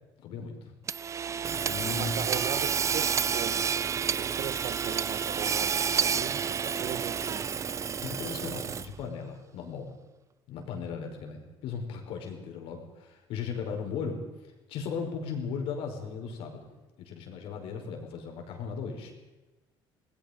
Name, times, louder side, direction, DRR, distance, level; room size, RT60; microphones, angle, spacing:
voice 1, 0.2-0.8 1.7-2.4 8.0-9.9 10.5-14.2 14.7-16.7 17.0-19.1, left 5 dB, 75° left, 3 dB, 5.3 m, -37 dB
Hammer / Sawing, 0.9-9.1, right 7 dB, 30° right, 0.6 m, -30 dB
voice 2, 1.8-3.7 4.2-7.4, right 9 dB, 60° right, 11 dB, 1.8 m, -38 dB
28.0 x 19.5 x 5.3 m, 1.1 s
cardioid pair, 115°, 10 cm